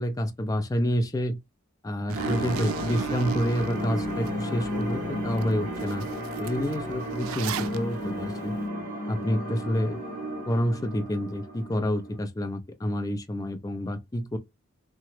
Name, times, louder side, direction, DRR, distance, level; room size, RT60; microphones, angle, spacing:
voice 1, 0.0-1.4 1.8-6.1 6.4-8.6 9.1-10.0 10.5-14.4, equal, 15° left, 0.4 m, -28 dB
sound 1, 2.1-12.2, equal, 45° right, 1.6 m, -33 dB
Zipper (clothing), 2.1-4.3 4.8-4.9 5.4-5.5 5.7-7.8, right 8 dB, 85° right, 0.3 m, -35 dB
2.9 x 2.2 x 2.9 m
head